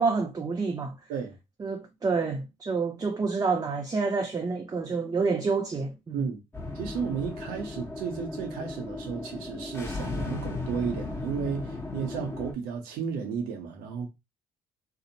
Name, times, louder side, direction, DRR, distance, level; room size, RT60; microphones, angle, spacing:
voice 1, 0.0-1.0 1.6-6.3, right 4 dB, 25° right, 0.5 m, -28 dB
sound 1, 6.5-12.5, left 2 dB, 15° left, 1.0 m, -36 dB
voice 2, 6.7-14.1, right 6 dB, 80° right, 0.6 m, -33 dB
2.7 x 2.0 x 2.7 m
supercardioid pair, 65°, 15 cm